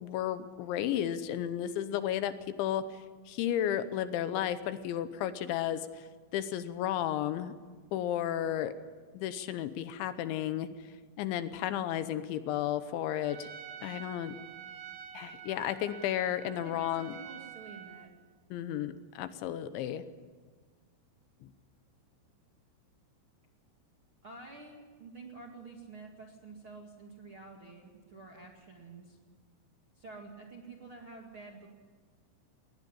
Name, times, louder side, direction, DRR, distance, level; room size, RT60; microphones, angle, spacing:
voice 1, 0.0-2.9 3.3-6.1 6.3-7.5 7.9-8.7 9.1-10.7 11.2-13.5 13.8-14.3 15.1-17.2 18.5-20.0 21.4-21.5, left 11 dB, 80° left, 12 dB, 3.1 m, -33 dB
Trumpet, 13.2-18.1, right 8 dB, 85° right, 1.7 m, -47 dB
voice 2, 16.6-18.1 24.2-29.2 29.9-31.7, right 3 dB, 45° right, 1 dB, 1.8 m, -49 dB
20.0 x 19.5 x 9.9 m, 1.4 s
omnidirectional pair, 5.6 m